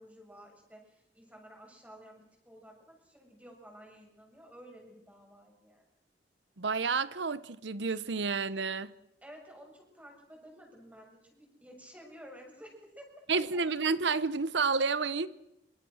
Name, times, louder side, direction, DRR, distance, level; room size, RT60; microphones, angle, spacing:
voice 1, 0.0-5.8 9.2-13.2, equal, 10° right, 7.0 m, -53 dB
voice 2, 6.6-8.9 13.3-15.3, right 4 dB, 85° right, 0.9 m, -30 dB
25.5 x 25.0 x 6.4 m
head